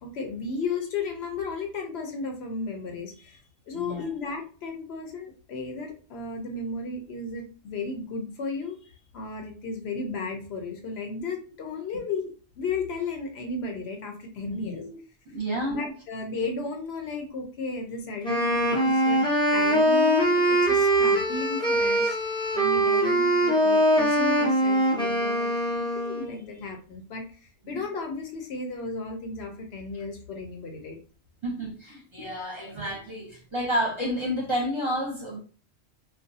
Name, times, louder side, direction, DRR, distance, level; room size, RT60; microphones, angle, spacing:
voice 1, 0.0-8.8 9.1-12.3 12.6-14.8 15.7-22.2 22.5-31.0, left 3 dB, 70° left, 0.9 m, -34 dB
voice 2, 3.7-4.0 14.5-15.0 15.3-15.9 27.7-27.9 31.4-35.4, equal, 30° right, 0.8 m, -30 dB
Wind instrument woodwind instrument, 18.2-26.3, right 1 dB, 5° left, 0.4 m, -22 dB
2.4 x 2.2 x 2.6 m
omnidirectional pair, 1.1 m